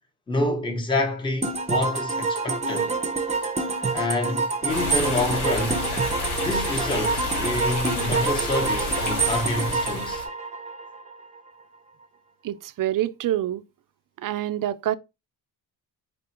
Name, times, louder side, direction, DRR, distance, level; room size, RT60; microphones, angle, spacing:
voice 1, 0.3-2.9 3.9-5.8 6.4-10.2, left 2 dB, 10° left, 0.9 m, -27 dB
sound 1, 1.4-11.1, right 4 dB, 15° right, 0.7 m, -27 dB
sound 2, 4.7-10.3, left 2 dB, 80° left, 1.8 m, -30 dB
voice 2, 12.4-13.6 14.2-15.0, right 13 dB, 55° right, 0.4 m, -26 dB
4.2 x 3.4 x 2.9 m
cardioid pair, 95°, 39 cm